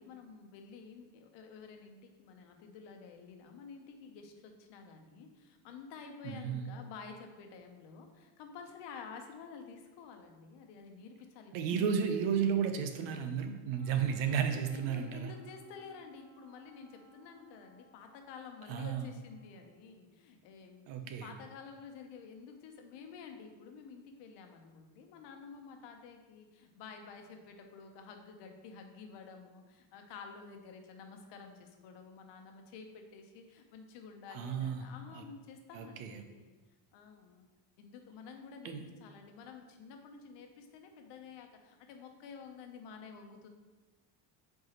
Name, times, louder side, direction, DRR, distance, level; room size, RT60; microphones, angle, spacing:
voice 1, 0.0-11.9 13.9-20.9 21.2-36.6 36.9-37.5 37.8-43.5, left 5 dB, 60° left, 4 dB, 0.9 m, -51 dB
voice 2, 6.2-6.7 11.5-15.3 18.7-19.1 20.9-21.3 34.3-35.2 35.7-36.2 38.6-38.8, right 7 dB, 70° right, 7 dB, 0.8 m, -33 dB
Wind instrument woodwind instrument, 13.7-19.8, right 1 dB, 15° left, 0.8 m, -62 dB
7.8 x 4.6 x 3.0 m, 1.2 s
cardioid pair, 175°, 47 cm